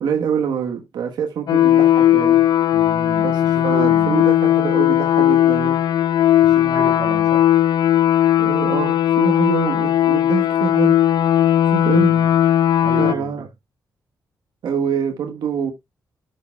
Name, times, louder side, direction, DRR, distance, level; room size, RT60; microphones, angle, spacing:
voice 1, 0.0-2.4 3.2-5.8 8.4-11.0 11.7-12.1 13.0-13.4 14.6-15.7, right 7 dB, 90° right, 1.1 m, -25 dB
sound 1, 1.5-13.1, left 11 dB, 75° left, 0.5 m, -17 dB
voice 2, 2.7-4.3 6.4-7.5 11.9-12.3 12.8-13.5, right 6 dB, 65° right, 1.8 m, -32 dB
10.5 x 6.5 x 2.2 m
cardioid pair, 105°, 7 cm